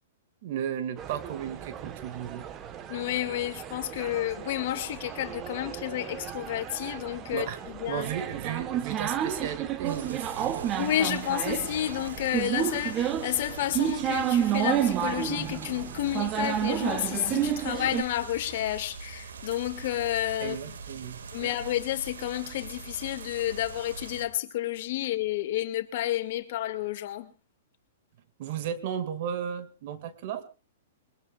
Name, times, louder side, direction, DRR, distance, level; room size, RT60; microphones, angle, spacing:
voice 1, 0.4-2.5 7.3-7.6 7.9-10.7 20.4-21.5 28.4-30.4, right 9 dB, 55° right, 2.1 m, -34 dB
sound 1, 1.0-18.0, right 10 dB, 30° right, 1.3 m, -31 dB
voice 2, 2.9-8.1 10.8-20.6 21.3-27.3, left 13 dB, 55° left, 2.1 m, -30 dB
sound 2, 9.9-24.3, right 5 dB, 85° right, 2.1 m, -43 dB
22.0 x 21.5 x 2.4 m
hypercardioid pair, 135°, 0 cm